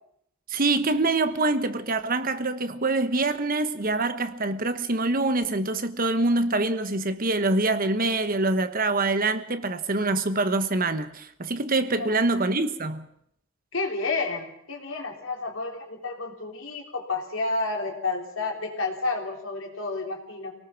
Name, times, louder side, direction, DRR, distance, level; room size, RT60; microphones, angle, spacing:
voice 1, 0.5-13.1, right 2 dB, 45° right, 1.3 m, -25 dB
voice 2, 13.7-20.5, left 3 dB, 75° left, 3.9 m, -30 dB
25.5 x 18.5 x 6.1 m
head